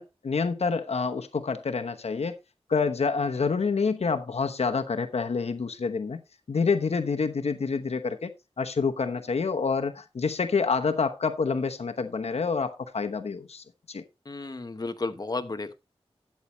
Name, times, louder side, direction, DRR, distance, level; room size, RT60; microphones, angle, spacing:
voice 1, 0.0-2.3 2.7-6.2 6.5-8.3 8.6-14.0, left 5 dB, 85° left, 1.0 m, -27 dB
voice 2, 14.2-15.7, left 3 dB, 40° left, 1.1 m, -33 dB
13.0 x 8.5 x 3.1 m
wide cardioid pair, 80°, 10 cm